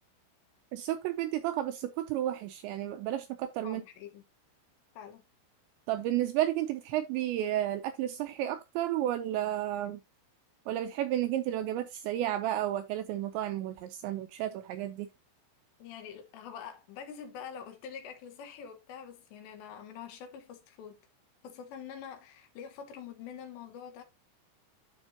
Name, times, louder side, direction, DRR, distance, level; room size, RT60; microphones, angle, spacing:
voice 1, 0.7-3.8 5.9-10.0 10.7-15.1, right 12 dB, 85° right, 2.6 m, -32 dB
voice 2, 3.6-4.2 4.9-5.2 15.8-21.0 21.4-24.0, left 7 dB, 75° left, 3.2 m, -45 dB
11.5 x 5.3 x 2.7 m
omnidirectional pair, 5.7 m